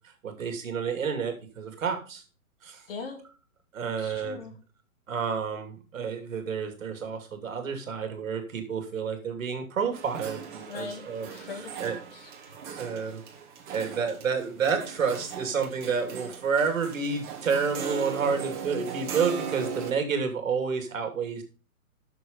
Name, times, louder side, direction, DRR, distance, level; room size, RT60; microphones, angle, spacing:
voice 1, 0.2-2.2 2.6-2.8 3.7-4.4 5.1-11.3 11.8-12.0 12.8-13.2 13.7-21.4, right 5 dB, 65° right, 6 dB, 2.7 m, -29 dB
voice 2, 2.9-3.2 3.8-4.5 10.7-12.3, left 4 dB, 40° left, 4 dB, 2.4 m, -40 dB
sound 1, 9.9-19.9, right 7 dB, 35° right, 1.9 m, -38 dB
9.3 x 6.6 x 5.3 m, 0.35 s
hypercardioid pair, 165°, 43 cm